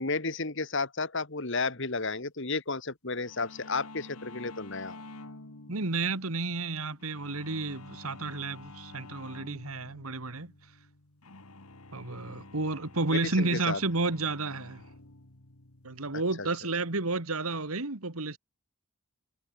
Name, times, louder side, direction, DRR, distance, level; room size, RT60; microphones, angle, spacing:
voice 1, 0.0-5.0 13.1-13.8, left 3 dB, 55° left, 2.0 m, -32 dB
sound 1, 3.2-17.7, left 2 dB, 80° left, 2.5 m, -50 dB
voice 2, 5.7-10.5 11.9-14.8 15.8-18.4, right 3 dB, 75° right, 2.2 m, -31 dB
head